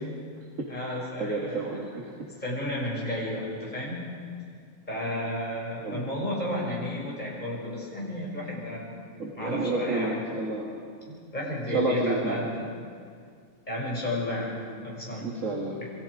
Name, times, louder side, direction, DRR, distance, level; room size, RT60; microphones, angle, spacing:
voice 1, 0.7-1.8 2.2-4.0 4.9-9.1 9.3-10.2 11.3-12.7 13.7-15.3 15.8-15.9, left 1 dB, 30° left, -4 dB, 6.4 m, -32 dB
voice 2, 1.2-2.1 5.8-6.1 9.2-10.8 11.7-12.5 15.2-15.8, right 2 dB, 60° right, -1 dB, 2.5 m, -30 dB
27.5 x 23.0 x 5.0 m, 2.2 s
omnidirectional pair, 1.5 m